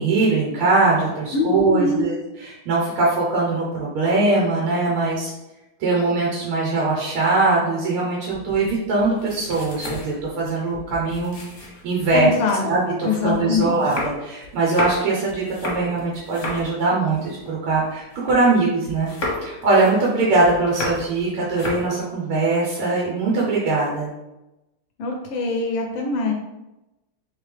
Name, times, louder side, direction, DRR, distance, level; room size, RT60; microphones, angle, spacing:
voice 1, 0.0-5.3 5.8-12.3 12.6-19.1 19.4-24.1, right 3 dB, 80° right, -4 dB, 1.7 m, -21 dB
voice 2, 1.3-2.1 12.1-12.7 13.0-13.8 25.0-26.3, left 3 dB, 75° left, 1 dB, 1.3 m, -23 dB
sound 1, 8.3-12.4 12.8-18.6 18.9-21.2 21.5-22.0, left 2 dB, 45° left, 1.0 m, -33 dB
3.7 x 3.4 x 3.3 m, 0.97 s
omnidirectional pair, 2.4 m